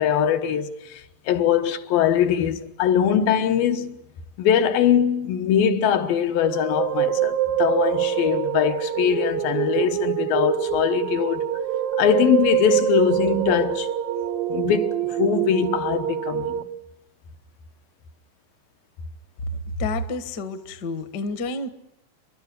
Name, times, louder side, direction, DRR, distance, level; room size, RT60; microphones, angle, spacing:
voice 1, 0.0-3.9 4.4-11.5 12.0-13.9 14.5-16.7, left 8 dB, 85° left, 3.0 m, -22 dB
sound 1, 6.4-16.6, right 11 dB, 85° right, 1.3 m, -25 dB
voice 2, 19.8-21.7, left 2 dB, 55° left, 1.1 m, -29 dB
29.0 x 12.5 x 9.8 m
omnidirectional pair, 4.0 m